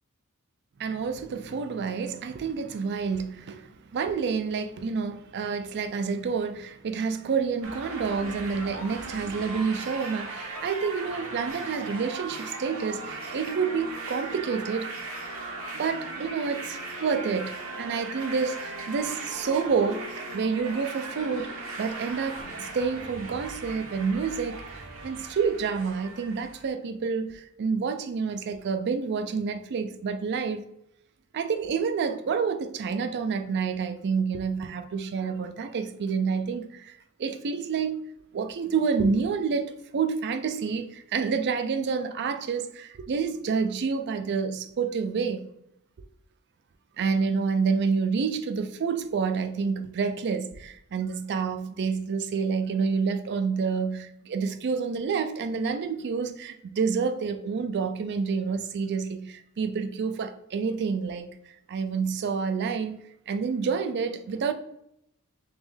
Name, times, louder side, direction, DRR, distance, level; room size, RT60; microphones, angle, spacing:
voice 1, 0.8-14.9 15.8-20.0 20.3-30.6 31.3-38.0 38.3-45.4 47.0-61.3 61.7-63.0 63.3-64.5, right 5 dB, 50° right, 0.4 m, -28 dB
sound 1, 7.6-26.7, right 3 dB, 70° right, 0.8 m, -38 dB
3.4 x 3.1 x 3.5 m
head